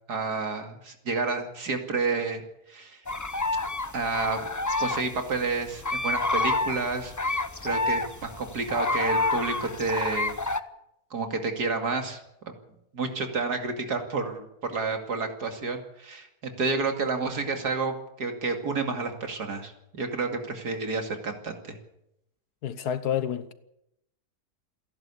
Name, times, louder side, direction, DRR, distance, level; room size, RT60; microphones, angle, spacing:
voice 1, 0.1-2.4 2.7-3.0 3.9-4.5 4.8-10.4 11.1-12.2 12.9-21.8, right 4 dB, 75° right, 3.0 m, -30 dB
sound 1, 3.1-10.6, left 2 dB, 30° left, 0.3 m, -29 dB
voice 2, 22.6-23.5, left 9 dB, 75° left, 1.6 m, -29 dB
28.0 x 11.0 x 8.4 m
omnidirectional pair, 1.7 m